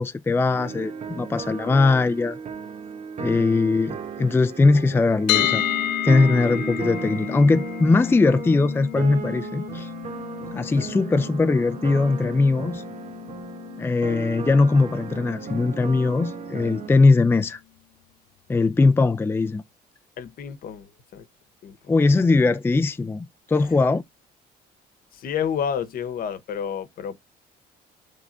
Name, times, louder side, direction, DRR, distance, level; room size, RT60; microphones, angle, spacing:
voice 1, 0.0-2.4 3.2-5.6 6.0-9.9 10.5-12.8 13.8-17.6 18.5-19.6 21.9-24.0, left 3 dB, 15° left, 0.4 m, -20 dB
sound 1, 0.6-16.9, right 6 dB, 45° right, 1.1 m, -35 dB
sound 2, 5.3-17.2, left 15 dB, 85° left, 0.5 m, -32 dB
voice 2, 20.2-21.3 21.6-21.8 25.1-27.2, left 8 dB, 60° left, 1.1 m, -30 dB
7.2 x 3.6 x 3.8 m
cardioid pair, 110°, 17 cm